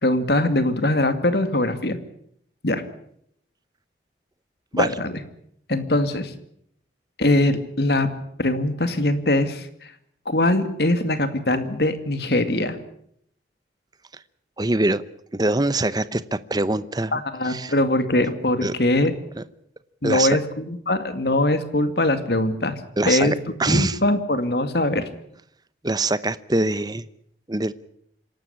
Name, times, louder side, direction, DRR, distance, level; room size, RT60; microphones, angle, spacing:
voice 1, 0.0-2.0 2.6-2.8 4.7-5.1 5.7-6.3 7.2-8.1 8.4-9.7 10.3-12.8 17.1-19.1 20.0-22.8 23.1-23.4 23.7-25.0, left 1 dB, 60° left, 10 dB, 2.3 m, -22 dB
voice 2, 14.6-15.0 15.3-17.7 18.6-18.7 19.4-19.5 20.0-20.4 23.0-23.3 23.6-24.0 25.8-27.0 27.5-27.7, right 2 dB, 20° right, 15 dB, 0.8 m, -23 dB
26.5 x 12.5 x 9.9 m, 0.69 s
head